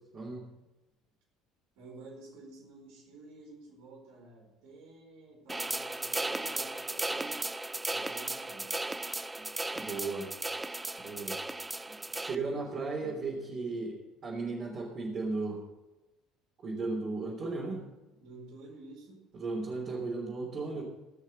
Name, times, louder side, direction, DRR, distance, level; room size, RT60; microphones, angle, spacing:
voice 1, 1.8-7.4 7.9-8.8 17.9-19.2, right 3 dB, 60° right, 0 dB, 4.6 m, -51 dB
sound 1, 5.5-12.4, right 2 dB, 10° right, 0.7 m, -36 dB
voice 2, 9.7-10.3 11.0-11.4 11.9-14.0 14.2-15.6 16.6-17.8 19.3-20.8, right 3 dB, 40° right, -4 dB, 3.4 m, -35 dB
19.0 x 6.5 x 6.5 m, 1.1 s
figure-of-eight pair, 60°, 0 cm